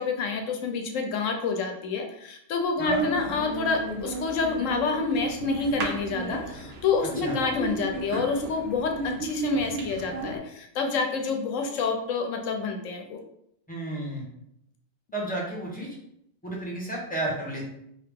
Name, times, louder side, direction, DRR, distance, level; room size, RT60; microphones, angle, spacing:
voice 1, 0.0-13.2, left 4 dB, 80° left, 3 dB, 1.0 m, -28 dB
sound 1, 2.8-10.4, right 2 dB, 60° right, 0.9 m, -33 dB
voice 2, 13.7-14.2 15.1-15.9 16.4-17.7, right 1 dB, 5° left, -3 dB, 1.2 m, -32 dB
4.3 x 2.8 x 3.6 m, 0.74 s
omnidirectional pair, 1.3 m